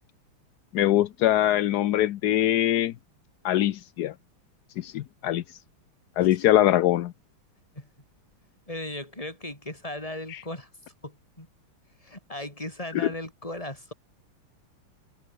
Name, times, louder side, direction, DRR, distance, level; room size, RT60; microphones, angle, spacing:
voice 1, 0.7-2.9 3.4-4.1 4.8-5.4 6.2-7.1 10.3-10.4 12.9-13.1, left 13 dB, 70° left, 0.9 m, -23 dB
voice 2, 8.7-10.7 11.0-11.5 12.0-13.9, left 1 dB, 15° left, 4.5 m, -37 dB
open air
omnidirectional pair, 2.4 m